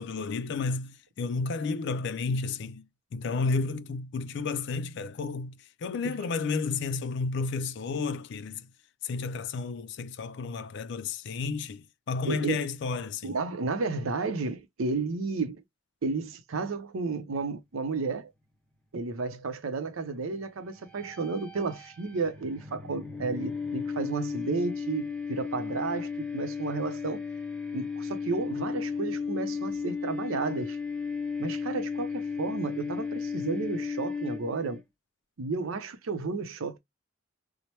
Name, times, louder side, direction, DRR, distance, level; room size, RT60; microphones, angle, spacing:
voice 1, 0.0-8.7 9.0-13.4, left 4 dB, 60° left, 0.4 m, -32 dB
voice 2, 12.3-12.6 13.2-15.6 16.0-18.3 18.9-27.2 27.7-30.8 31.4-34.8 35.4-36.8, right 4 dB, 85° right, 0.6 m, -32 dB
sound 1, 20.8-34.8, left 5 dB, 5° left, 0.5 m, -34 dB
3.1 x 2.1 x 2.8 m
head